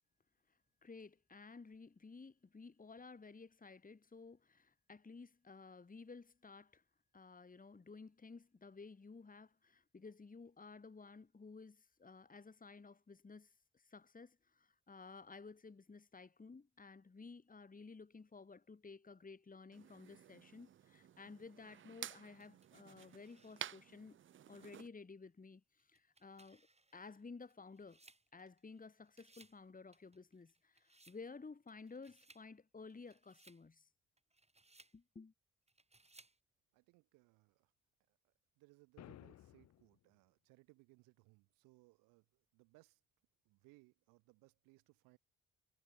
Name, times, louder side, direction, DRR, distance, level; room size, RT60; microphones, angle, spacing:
voice 1, 0.8-6.8 7.1-24.2 24.5-26.7 26.9-28.0 28.3-33.9 34.9-35.3, left 4 dB, 25° left, 1.9 m, -55 dB
sound 1, 19.7-24.9, right 10 dB, 40° right, 0.5 m, -52 dB
sound 2, 22.4-23.9 24.5-24.6 25.8-28.8 29.1-29.6 29.9-31.2 31.7-32.5 32.9-33.6 34.2-35.0 35.7-36.4, right 2 dB, 20° right, 5.7 m, -67 dB
voice 2, 36.7-37.7 38.1-43.0 43.4-45.2, right 25 dB, 80° right, 2.5 m, -68 dB
sound 3, 39.0-40.0, left 12 dB, 55° left, 0.7 m, -57 dB
hypercardioid pair, 45°, 32 cm